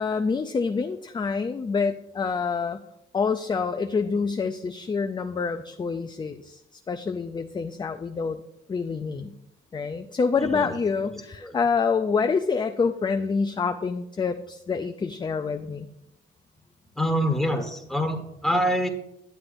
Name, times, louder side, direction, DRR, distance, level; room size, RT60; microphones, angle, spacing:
voice 1, 0.0-2.8 3.1-8.4 8.7-9.3 9.7-15.9, left 5 dB, 25° left, 7 dB, 0.4 m, -27 dB
voice 2, 10.4-10.7 11.0-11.5 16.9-18.9, equal, ahead, 3 dB, 1.5 m, -26 dB
11.0 x 7.7 x 2.6 m, 0.84 s
cardioid pair, 90°, 20 cm